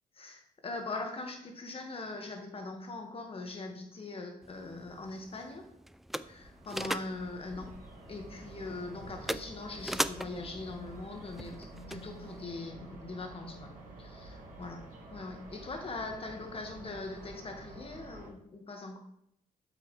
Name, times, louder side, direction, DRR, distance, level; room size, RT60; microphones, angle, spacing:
voice 1, 0.1-5.6 6.2-7.8 8.1-13.7 14.0-14.8 15.1-19.0, left 3 dB, 40° left, 3 dB, 1.6 m, -41 dB
sound 1, 4.4-12.4, equal, ahead, 0.3 m, -41 dB
sound 2, 6.2-18.3, right 2 dB, 65° right, 2.1 m, -50 dB
sound 3, 11.7-15.6, right 3 dB, 70° left, 1.5 m, -56 dB
7.7 x 5.7 x 3.2 m, 0.75 s
supercardioid pair, 65°, 15 cm